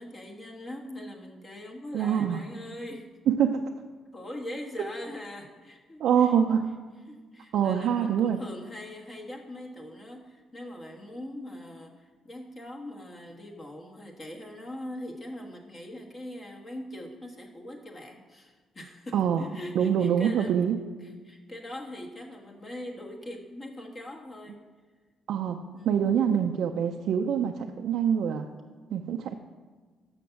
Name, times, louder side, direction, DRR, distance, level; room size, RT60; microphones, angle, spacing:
voice 1, 0.0-3.1 4.1-6.3 7.1-20.5 21.2-24.6 25.7-26.2, left 1 dB, 35° left, 1 dB, 1.3 m, -41 dB
voice 2, 1.9-2.4 3.3-3.6 6.0-6.8 7.5-8.4 19.1-19.5 19.8-20.8 25.3-28.5 28.9-29.3, right 8 dB, 75° right, 3 dB, 0.4 m, -25 dB
6.3 x 5.8 x 6.9 m, 1.4 s
cardioid pair, 90°, 0 cm